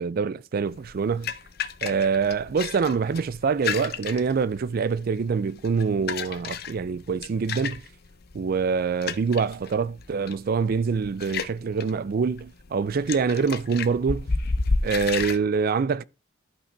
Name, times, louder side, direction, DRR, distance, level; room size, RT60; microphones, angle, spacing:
voice 1, 0.0-1.3 1.8-7.8 8.3-14.3 14.8-16.0, right 5 dB, 50° right, 0.4 m, -25 dB
sound 1, 0.7-15.4, left 4 dB, 55° left, 0.7 m, -33 dB
11.5 x 5.8 x 4.6 m
head